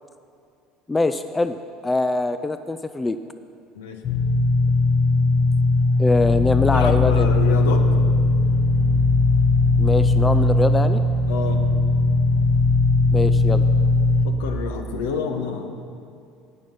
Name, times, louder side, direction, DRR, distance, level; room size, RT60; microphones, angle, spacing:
voice 1, 0.9-1.6 1.8-3.2 6.0-7.3 9.8-11.0 13.1-13.6, left 2 dB, 15° left, 11 dB, 0.4 m, -23 dB
sound 1, 4.0-14.3, left 3 dB, 45° left, 1.2 m, -18 dB
voice 2, 6.7-7.8 11.3-11.6 14.2-15.8, left 6 dB, 65° left, 6 dB, 1.0 m, -28 dB
18.5 x 6.3 x 5.4 m, 2.4 s
figure-of-eight pair, 65°, 0 cm